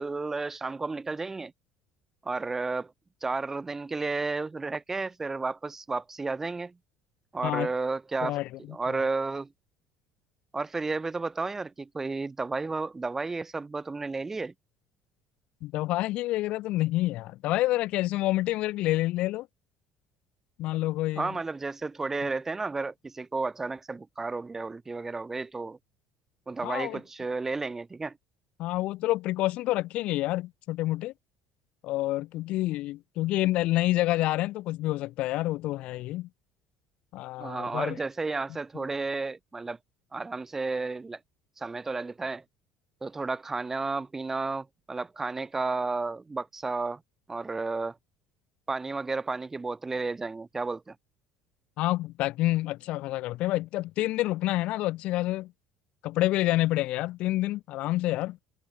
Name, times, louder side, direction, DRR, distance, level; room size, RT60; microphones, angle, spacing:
voice 1, 0.0-1.5 2.2-2.9 3.2-6.8 7.3-8.4 8.7-9.5 10.5-14.5 21.2-25.8 26.5-28.2 37.4-39.8 40.1-41.2 41.6-42.4 43.0-47.0 47.3-48.0 48.7-51.0, right 3 dB, 15° right, 3.3 m, -32 dB
voice 2, 15.6-19.5 20.6-21.3 26.6-27.0 28.6-31.1 31.8-36.3 37.1-38.0 38.7-38.8 51.8-55.5 56.0-58.4, left 17 dB, 65° left, 1.9 m, -28 dB
cardioid pair, 115°, 2 cm